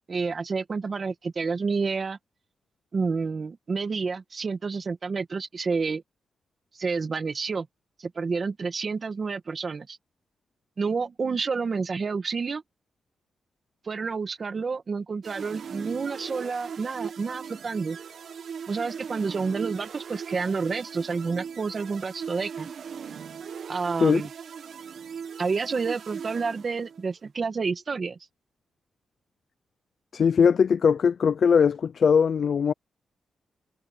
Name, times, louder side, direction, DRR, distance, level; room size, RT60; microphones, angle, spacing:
voice 1, 0.0-2.2 2.9-6.0 6.8-7.7 8.0-10.0 10.8-12.6 13.9-18.0 18.7-22.7 23.7-24.3 25.4-28.2, right 4 dB, 35° right, 1.8 m, -29 dB
sound 1, 15.2-27.1, right 7 dB, 60° right, 1.4 m, -39 dB
voice 2, 30.1-32.7, left 6 dB, 50° left, 0.4 m, -20 dB
wide cardioid pair, 155°, 0 cm